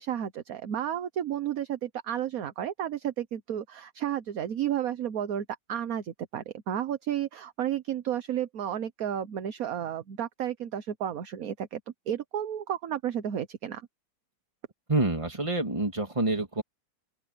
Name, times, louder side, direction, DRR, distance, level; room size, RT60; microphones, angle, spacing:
voice 1, 0.0-11.8 12.1-13.8, right 10 dB, 55° right, 1.3 m, -32 dB
voice 2, 14.9-16.6, right 2 dB, 15° right, 2.3 m, -27 dB
open air
omnidirectional pair, 1.9 m